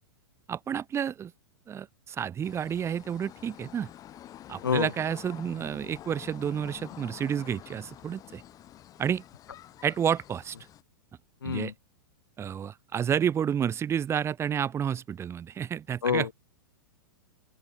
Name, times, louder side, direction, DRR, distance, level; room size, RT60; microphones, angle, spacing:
voice 1, 0.5-1.3 1.7-3.9 4.5-8.4 9.0-9.2 9.8-10.6 11.4-11.7 12.4-16.3, right 8 dB, 20° right, 1.9 m, -30 dB
sound 1, 2.4-10.8, left 12 dB, 30° left, 3.6 m, -48 dB
voice 2, 11.4-11.7 16.0-16.3, left 7 dB, 80° left, 0.6 m, -27 dB
open air
figure-of-eight pair, 100°, 12 cm